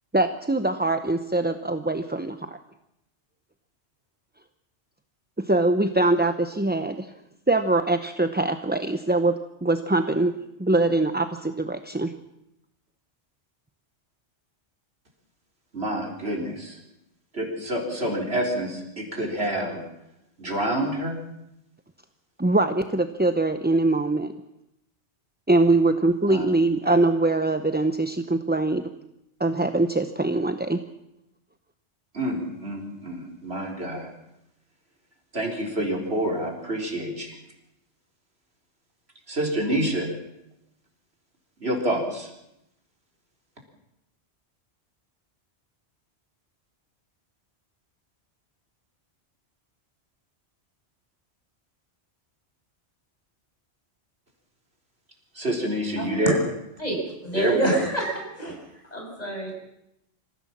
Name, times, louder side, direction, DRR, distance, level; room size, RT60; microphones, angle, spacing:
voice 1, 0.1-2.6 5.4-7.1 7.5-12.1 22.4-24.3 25.5-28.9 29.4-30.8, right 2 dB, 10° right, 8 dB, 0.6 m, -23 dB
voice 2, 15.7-16.8 17.3-19.8 20.4-21.2 26.2-26.5 26.8-26.9 32.1-34.1 35.3-37.4 39.3-40.1 41.6-42.3 55.4-56.4 57.3-57.8, right 1 dB, 65° right, 1 dB, 4.2 m, -27 dB
voice 3, 56.0-56.3 56.8-57.0 57.2-58.6 58.9-59.5, right 2 dB, 35° left, 0 dB, 6.7 m, -27 dB
25.5 x 15.5 x 7.3 m, 0.84 s
omnidirectional pair, 1.1 m